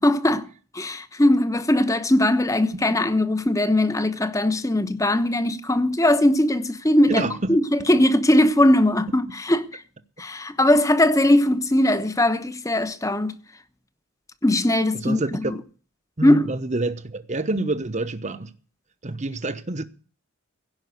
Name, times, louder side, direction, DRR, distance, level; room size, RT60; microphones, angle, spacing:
voice 1, 0.0-0.5 0.7-7.2 7.5-7.6 7.9-9.7 10.2-13.4 14.4-15.5 16.2-16.5, left 1 dB, 15° left, 1.0 m, -20 dB
voice 2, 7.1-7.9 9.1-9.2 14.9-15.5 16.2-18.5 19.0-19.8, right 2 dB, 35° right, 1.0 m, -28 dB
16.5 x 5.5 x 9.5 m
head